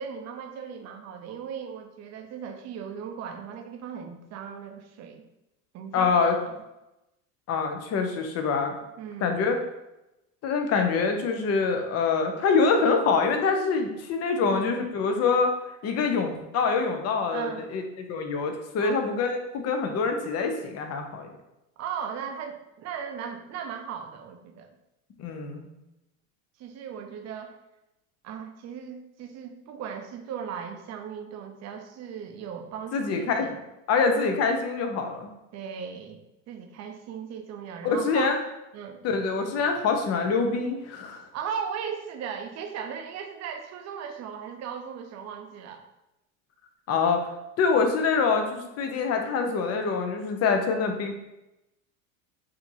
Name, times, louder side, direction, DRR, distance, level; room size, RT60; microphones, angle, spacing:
voice 1, 0.0-5.2 5.7-6.6 9.0-9.4 14.5-14.8 17.3-17.6 18.8-19.0 21.8-24.7 26.6-27.6 28.2-33.6 35.5-36.2 36.5-38.3 38.7-39.0 41.3-45.8, right 7 dB, 40° right, 5 dB, 0.7 m, -37 dB
voice 2, 5.9-6.3 7.5-8.7 9.2-9.6 10.4-15.5 15.8-21.3 25.2-25.7 32.9-33.5 33.9-35.3 37.8-38.4 39.0-41.2 46.9-47.3 47.6-51.1, left 4 dB, 35° left, 5 dB, 0.7 m, -25 dB
5.1 x 2.8 x 2.7 m, 0.93 s
hypercardioid pair, 100°, 42 cm